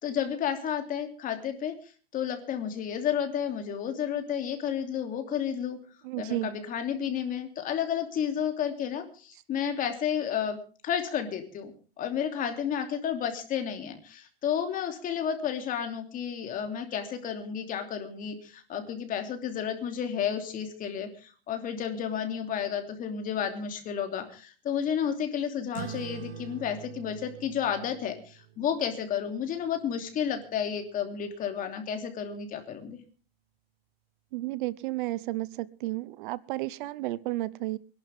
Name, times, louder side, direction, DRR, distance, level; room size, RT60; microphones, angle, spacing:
voice 1, 0.0-1.7 2.1-5.8 6.2-10.6 10.8-33.0, left 8 dB, 30° left, 6 dB, 3.0 m, -31 dB
voice 2, 6.0-6.5 34.3-37.8, right 18 dB, 55° right, 20 dB, 0.8 m, -32 dB
sound 1, 25.7-30.6, right 9 dB, 90° right, 2.6 m, -45 dB
24.5 x 11.5 x 3.6 m, 0.38 s
supercardioid pair, 145°, 30 cm